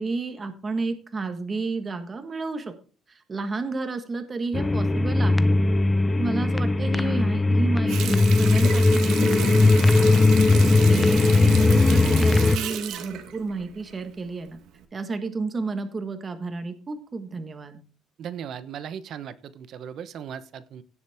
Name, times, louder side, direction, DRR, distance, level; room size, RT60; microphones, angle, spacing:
voice 1, 0.0-2.7 3.1-5.4 6.2-10.3 10.8-14.6 14.9-17.8, right 3 dB, 20° right, 7 dB, 1.4 m, -31 dB
sound 1, 4.5-12.6, left 3 dB, 15° left, 0.5 m, -19 dB
Water tap faucet, 7.9-14.3 14.7-14.8, right 10 dB, 70° right, 1.6 m, -34 dB
voice 2, 18.2-20.8, right 8 dB, 50° right, 14 dB, 1.0 m, -37 dB
16.5 x 7.3 x 3.5 m, 0.37 s
cardioid pair, 160°, 0 cm